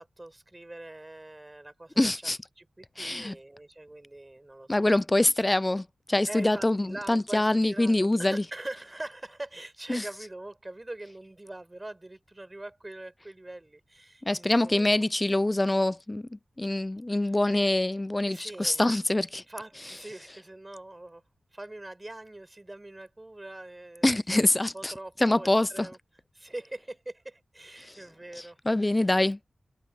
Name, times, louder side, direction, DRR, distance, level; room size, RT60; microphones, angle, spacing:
voice 1, 0.0-2.1 2.6-4.9 6.3-15.0 18.3-18.9 19.3-21.2 21.5-26.0 26.3-29.1, right 1 dB, 20° right, 4.6 m, -43 dB
voice 2, 2.0-2.4 3.0-3.4 4.7-8.4 9.9-10.0 14.3-19.4 24.0-24.9 25.2-25.9 27.9-28.0 28.7-29.4, left 1 dB, 20° left, 0.4 m, -25 dB
wide cardioid pair, 85°, 0 cm